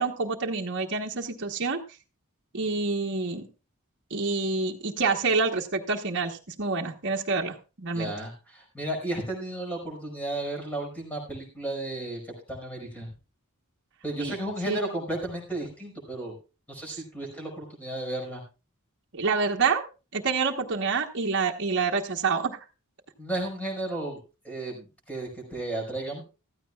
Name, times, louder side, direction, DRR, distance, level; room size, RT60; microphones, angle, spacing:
voice 1, 0.0-1.8 2.5-3.5 4.1-8.1 14.2-14.3 14.7-14.8 19.1-19.8 20.1-22.6, right 4 dB, 55° right, 0 dB, 1.2 m, -27 dB
voice 2, 7.9-13.1 14.0-16.4 16.7-18.4 23.2-24.2 24.4-26.2, right 1 dB, 5° left, 1 dB, 5.1 m, -33 dB
15.5 x 13.5 x 2.4 m, 0.31 s
head